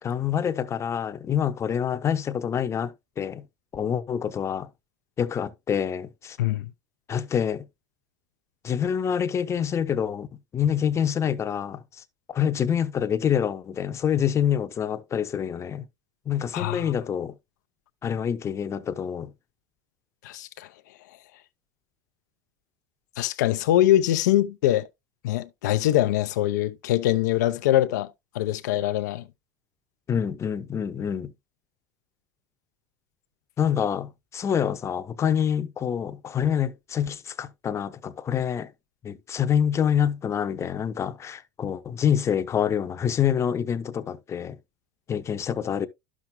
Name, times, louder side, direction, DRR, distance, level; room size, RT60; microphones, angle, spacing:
voice 1, 0.0-3.4 3.7-4.7 5.2-6.4 7.1-7.6 8.6-10.3 10.5-11.8 12.3-15.8 16.3-17.3 18.0-19.3 30.1-31.3 33.6-38.7 39.0-44.6 45.1-45.9, left 8 dB, 30° left, 0.8 m, -26 dB
voice 2, 6.4-6.7 16.5-16.8 20.2-20.7 23.2-24.9 25.2-29.2, left 13 dB, 80° left, 0.6 m, -23 dB
11.5 x 6.1 x 2.2 m
supercardioid pair, 100°, 9 cm